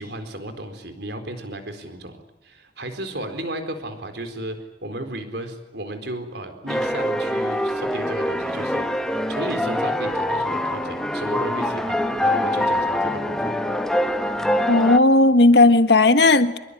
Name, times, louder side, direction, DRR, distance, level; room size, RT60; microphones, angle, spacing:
voice 1, 0.0-2.2 2.4-13.6, right 1 dB, 65° right, 4.3 m, -34 dB
sound 1, 6.7-15.0, left 1 dB, 5° left, 1.5 m, -24 dB
voice 2, 14.7-16.6, left 2 dB, 65° left, 1.6 m, -15 dB
24.5 x 23.0 x 9.9 m
head